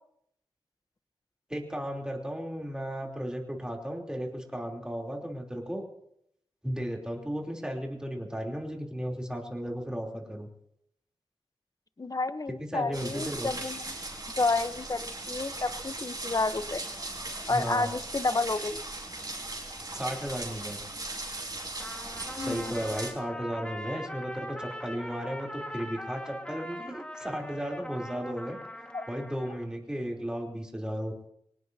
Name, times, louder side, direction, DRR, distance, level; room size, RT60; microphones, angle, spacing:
voice 1, 1.5-5.8 6.6-10.5 12.6-13.5 17.5-17.9 19.9-20.8 22.3-28.6 29.1-31.3, equal, 5° right, 0 dB, 3.4 m, -35 dB
voice 2, 12.0-13.9 14.4-16.8 17.5-18.8 22.4-22.7 28.9-29.0, left 3 dB, 35° left, 12 dB, 0.9 m, -30 dB
sound 1, 12.9-23.1, right 2 dB, 40° right, 4.5 m, -38 dB
Trumpet, 21.8-29.7, equal, 10° left, 1.7 m, -41 dB
24.0 x 19.0 x 2.8 m, 0.73 s
wide cardioid pair, 60°, 10 cm